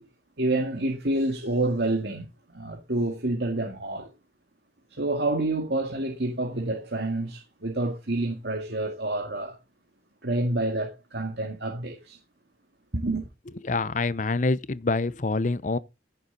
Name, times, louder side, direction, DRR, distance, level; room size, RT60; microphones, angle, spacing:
voice 1, 0.4-4.1 4.9-9.6 10.2-12.2 12.9-13.3, right 2 dB, 65° right, 2.0 m, -28 dB
voice 2, 13.6-15.8, left 3 dB, 45° left, 0.7 m, -26 dB
15.5 x 7.2 x 4.0 m
head